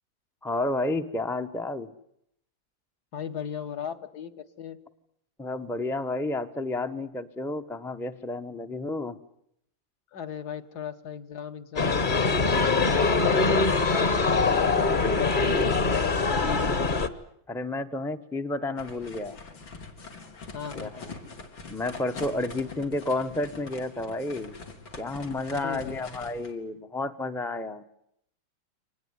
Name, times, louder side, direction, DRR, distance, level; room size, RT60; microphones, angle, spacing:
voice 1, 0.4-1.9 5.4-9.2 15.0-15.2 17.5-19.4 20.7-21.1 21.7-24.6 25.0-27.8, left 2 dB, ahead, 7 dB, 0.5 m, -31 dB
voice 2, 3.1-4.8 10.1-14.2 14.6-16.9 20.5-21.1 25.5-26.0, left 8 dB, 60° left, 8 dB, 1.7 m, -38 dB
sound 1, 11.8-17.1, left 4 dB, 30° left, 1.1 m, -23 dB
sound 2, 18.8-26.5, left 3 dB, 85° left, 3.7 m, -43 dB
24.5 x 20.0 x 9.5 m, 0.74 s
omnidirectional pair, 2.1 m